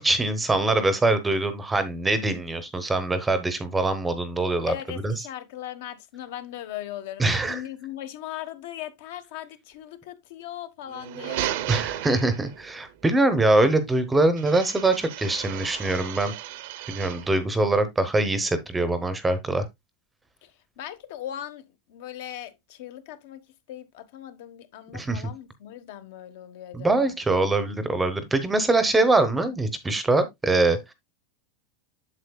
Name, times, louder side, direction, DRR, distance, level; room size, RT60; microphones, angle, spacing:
voice 1, 0.0-4.7 5.0-5.1 7.2-7.6 11.7-16.3 16.9-19.7 24.9-25.2 26.7-30.9, right 2 dB, 5° right, 0.7 m, -23 dB
voice 2, 4.7-11.5 20.4-23.4 23.7-27.1, left 12 dB, 60° left, 1.1 m, -39 dB
sound 1, 10.9-12.8 14.4-17.4, right 13 dB, 55° right, 0.7 m, -34 dB
8.1 x 7.3 x 2.2 m
supercardioid pair, 170°, 0 cm